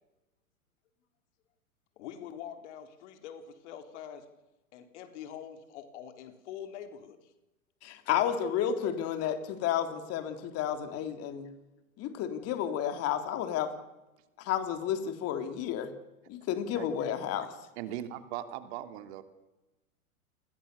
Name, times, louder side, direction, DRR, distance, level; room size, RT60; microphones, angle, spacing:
voice 1, 2.0-4.3 4.7-7.3, left 9 dB, 50° left, 8 dB, 3.9 m, -45 dB
voice 2, 7.8-11.5 12.0-13.7 14.4-15.9 16.3-17.5, left 9 dB, 35° left, 8 dB, 3.5 m, -31 dB
voice 3, 17.8-19.2, right 12 dB, 50° right, 9 dB, 2.9 m, -39 dB
29.0 x 21.0 x 7.0 m, 1.0 s
hypercardioid pair, 110°, 43 cm